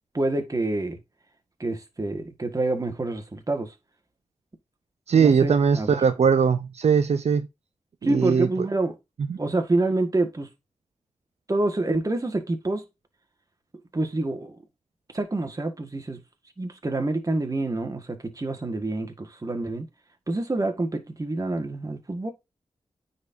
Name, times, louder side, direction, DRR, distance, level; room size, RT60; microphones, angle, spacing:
voice 1, 0.1-1.0 1.6-3.7 5.1-6.0 8.0-8.9 9.4-10.5 11.5-12.8 13.9-14.5 15.1-16.2 16.6-19.9 20.3-22.3, right 2 dB, 30° right, 1.7 m, -27 dB
voice 2, 5.1-7.5 8.0-8.5 9.3-9.4, right 6 dB, 75° right, 0.6 m, -20 dB
9.5 x 4.3 x 2.7 m
cardioid pair, 65°, 11 cm